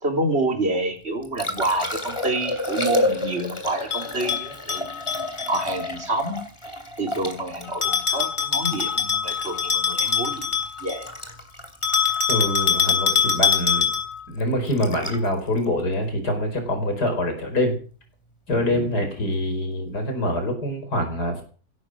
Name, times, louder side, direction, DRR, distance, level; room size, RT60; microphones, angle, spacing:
voice 1, 0.0-4.8 5.5-6.4 7.0-11.1, right 2 dB, 40° right, 4 dB, 3.7 m, -28 dB
Liquid, 1.0-17.1 19.9-20.0, left 2 dB, 15° left, 2.7 m, -32 dB
Bell, 3.9-5.6 7.8-11.1 11.8-14.2, left 7 dB, 50° left, 3.5 m, -23 dB
voice 2, 12.3-13.9 14.3-17.7 18.5-21.4, left 1 dB, 80° left, 5 dB, 5.5 m, -25 dB
16.0 x 12.5 x 6.2 m, 0.41 s
omnidirectional pair, 1.7 m